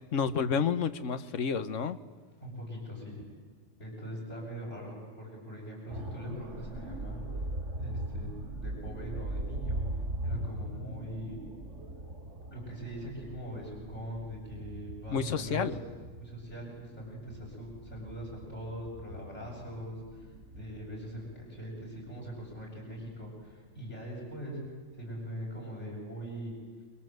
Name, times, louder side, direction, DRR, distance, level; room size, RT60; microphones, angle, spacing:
voice 1, 0.0-2.0 15.1-15.8, left 6 dB, 85° left, 12 dB, 1.4 m, -30 dB
voice 2, 2.4-3.3 3.8-7.2 7.8-8.3 8.6-9.8 10.2-11.4 12.5-15.8 16.2-24.6 25.0-26.5, equal, 70° left, -2 dB, 7.7 m, -42 dB
sound 1, 5.9-23.8 24.1-24.3, right 1 dB, 75° right, 2.8 m, -40 dB
30.0 x 24.0 x 7.8 m, 1.5 s
omnidirectional pair, 1.3 m